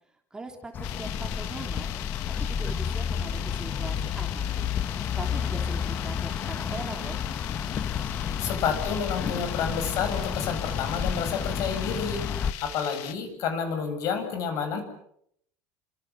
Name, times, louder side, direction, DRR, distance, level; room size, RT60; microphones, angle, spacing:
voice 1, 0.1-7.2, right 3 dB, 10° right, 4 dB, 3.2 m, -42 dB
sound 1, 0.7-12.5, left 7 dB, 30° left, 1.3 m, -31 dB
sound 2, 0.8-13.1, left 14 dB, 75° left, 2.2 m, -40 dB
voice 2, 8.4-12.3 12.6-14.8, left 6 dB, 50° left, 8 dB, 7.9 m, -30 dB
30.0 x 26.0 x 7.4 m, 0.72 s
cardioid pair, 155°, 7 cm